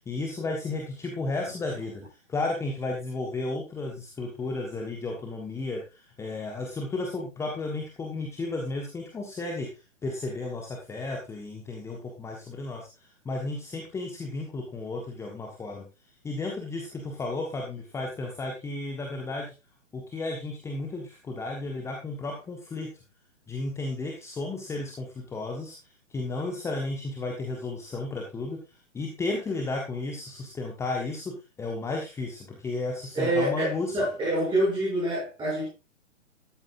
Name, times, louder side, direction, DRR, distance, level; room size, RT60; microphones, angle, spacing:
voice 1, 0.0-15.8 16.2-19.5 19.9-22.9 23.5-33.9, left 2 dB, 5° left, 1.4 m, -33 dB
voice 2, 33.1-35.7, right 1 dB, 10° right, 7.4 m, -26 dB
13.0 x 11.5 x 2.6 m
figure-of-eight pair, 120°, 40 cm